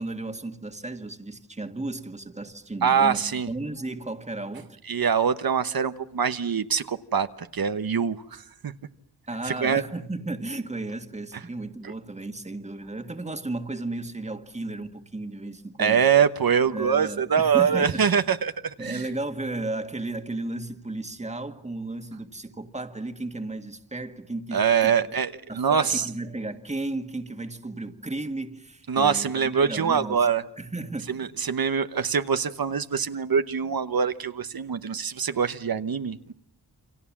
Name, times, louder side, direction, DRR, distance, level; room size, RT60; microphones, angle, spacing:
voice 1, 0.0-4.8 9.3-16.0 16.7-18.1 18.8-25.1 25.5-30.3 30.6-31.2, right 2 dB, 15° right, 1.8 m, -34 dB
voice 2, 2.8-3.5 4.9-8.7 9.5-9.8 11.8-11.9 15.8-19.0 24.5-26.1 28.9-30.4 31.1-36.3, right 7 dB, 60° right, 1.1 m, -24 dB
29.0 x 26.5 x 7.3 m
wide cardioid pair, 130°, 40 cm